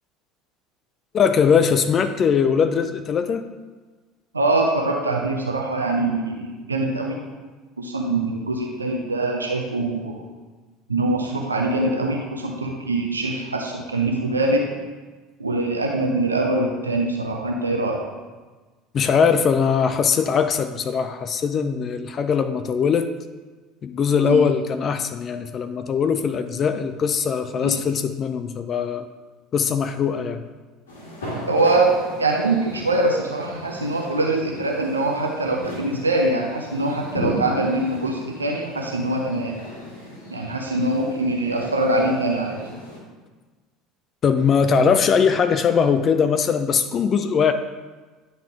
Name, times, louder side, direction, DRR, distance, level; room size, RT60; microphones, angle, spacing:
voice 1, 1.1-3.5 18.9-23.1 23.8-29.1 29.5-30.4 44.2-47.5, left 6 dB, 35° left, 9 dB, 0.4 m, -21 dB
voice 2, 4.3-7.2 7.8-10.3 10.9-14.6 15.4-18.0 24.2-24.5 27.6-27.8 31.4-39.5 40.3-42.6, right 2 dB, 85° right, 1 dB, 0.6 m, -23 dB
sound 1, 30.9-43.0, equal, 80° left, 1.9 m, -36 dB
10.0 x 4.0 x 3.6 m, 1.3 s
figure-of-eight pair, 65°, 0 cm